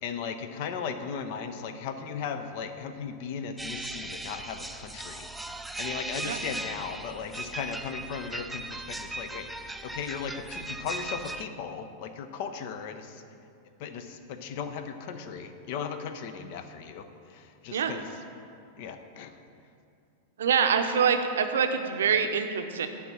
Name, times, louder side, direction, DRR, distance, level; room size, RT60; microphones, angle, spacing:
voice 1, 0.0-5.3 5.8-13.2 13.8-18.2 18.8-19.4, left 6 dB, 50° left, 9 dB, 0.6 m, -37 dB
sound 1, 3.6-11.5, right 2 dB, 5° right, 0.3 m, -38 dB
voice 2, 20.4-22.9, right 7 dB, 65° right, 7 dB, 0.6 m, -25 dB
11.0 x 3.6 x 7.3 m, 2.4 s
figure-of-eight pair, 90°, 0 cm